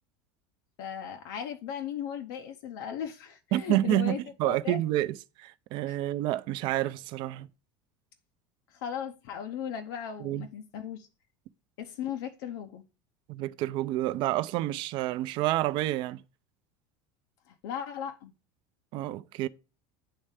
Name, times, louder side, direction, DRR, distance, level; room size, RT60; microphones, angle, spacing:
voice 1, 0.8-4.8 5.9-6.0 8.7-11.1 11.8-12.8 17.5-18.3, left 8 dB, 80° left, 0.7 m, -37 dB
voice 2, 3.5-7.5 10.2-10.5 13.3-16.2 18.9-19.5, right 15 dB, 45° right, 0.4 m, -29 dB
8.7 x 3.3 x 4.8 m
cardioid pair, 165°, 11 cm